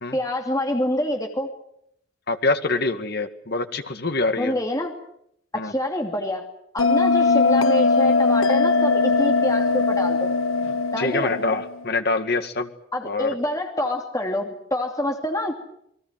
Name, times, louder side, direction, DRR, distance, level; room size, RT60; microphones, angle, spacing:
voice 1, 0.1-1.5 4.4-4.9 5.6-6.4 6.7-10.3 10.9-11.3 12.9-15.6, left 1 dB, 15° left, 2 dB, 2.8 m, -26 dB
voice 2, 2.3-4.5 5.5-5.7 11.0-12.7 13.1-13.3, left 3 dB, 50° left, 7 dB, 2.1 m, -25 dB
Bell, 6.8-11.9, left 4 dB, 85° left, 1.0 m, -20 dB
29.0 x 22.0 x 7.7 m, 0.73 s
head